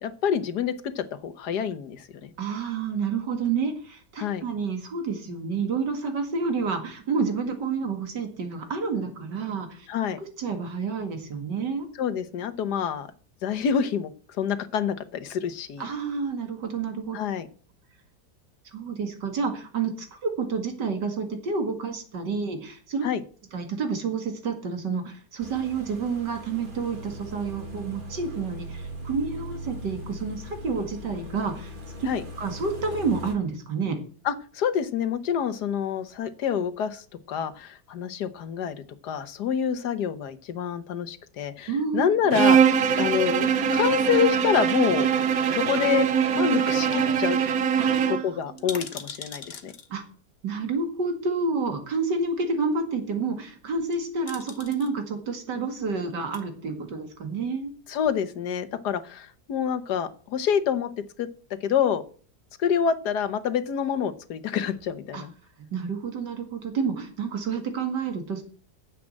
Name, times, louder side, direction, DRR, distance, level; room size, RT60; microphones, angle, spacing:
voice 1, 0.0-2.3 4.2-4.4 9.9-10.2 12.0-13.1 13.4-15.9 17.1-17.5 23.0-23.2 32.1-32.2 34.2-38.8 39.0-42.6 43.0-45.1 45.5-46.1 46.3-47.4 48.1-49.7 57.9-60.9 61.2-61.3 61.6-62.0 62.6-65.3, left 8 dB, 75° left, 12 dB, 1.6 m, -27 dB
voice 2, 2.4-9.9 10.2-11.9 15.8-17.2 18.7-23.1 23.5-31.7 32.0-32.1 32.4-34.0 41.7-42.1 47.8-48.2 48.6-48.8 49.9-50.0 50.4-57.7 65.1-65.2 65.6-68.4, right 4 dB, 85° right, 5 dB, 2.7 m, -29 dB
sound 1, 25.4-33.4, equal, 30° right, 2.2 m, -39 dB
Bowed string instrument, 42.3-48.3, right 7 dB, 60° right, 1.2 m, -22 dB
sound 2, 45.8-46.6 46.9-47.0 47.2-47.3 47.6-47.7 48.4-49.9 51.0-51.1 53.7-53.9 54.3-54.9 56.1-56.4 57.1-57.8 58.0-58.1, left 5 dB, 40° left, 1.2 m, -41 dB
9.7 x 7.6 x 7.6 m, 0.43 s
omnidirectional pair, 1.8 m